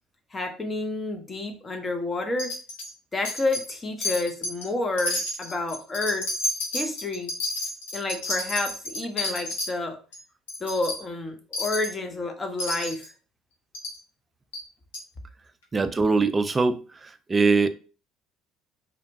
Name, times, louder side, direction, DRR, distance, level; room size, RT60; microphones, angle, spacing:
voice 1, 0.3-2.5 3.1-6.3 6.7-7.3 7.9-10.0 10.6-13.1, left 2 dB, 25° left, 0.7 m, -29 dB
Wind chime, 2.4-2.9 3.2-3.8 4.0-4.7 5.0-9.7 10.1-10.2 10.5-11.0 11.5-11.9 12.6-13.1 13.7-14.0 14.5-14.6 14.9-15.0, left 1 dB, 80° left, 0.7 m, -31 dB
voice 2, 15.7-16.8 17.3-17.7, right 4 dB, 25° right, 0.3 m, -21 dB
2.8 x 2.1 x 2.7 m
hypercardioid pair, 60°, 0 cm